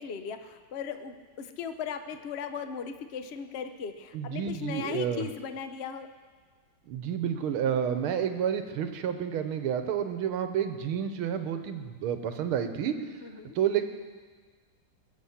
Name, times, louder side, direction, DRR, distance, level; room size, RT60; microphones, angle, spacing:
voice 1, 0.0-6.1 13.2-13.6, left 7 dB, 65° left, 9 dB, 0.6 m, -37 dB
voice 2, 4.1-5.3 6.9-13.0 13.6-13.9, right 8 dB, 85° right, 9 dB, 1.8 m, -30 dB
22.0 x 7.4 x 7.1 m, 1.5 s
omnidirectional pair, 2.3 m